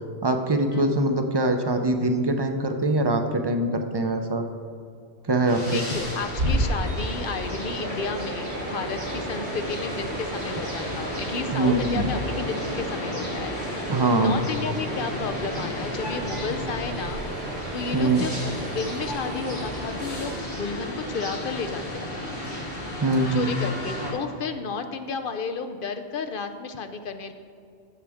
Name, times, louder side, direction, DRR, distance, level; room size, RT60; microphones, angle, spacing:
voice 1, 0.2-4.4 5.3-5.8 11.5-12.1 13.9-14.3 17.9-18.3 23.0-23.5, right 2 dB, 30° right, 5 dB, 0.6 m, -23 dB
sound 1, 5.4-24.1, left 1 dB, 80° left, 3.2 m, -34 dB
voice 2, 5.4-18.3 18.7-22.2 23.3-27.3, left 4 dB, 60° left, 8 dB, 0.8 m, -32 dB
sound 2, 5.9-20.4, right 1 dB, 75° right, 1.2 m, -33 dB
14.0 x 7.4 x 3.5 m, 2.3 s
omnidirectional pair, 1.1 m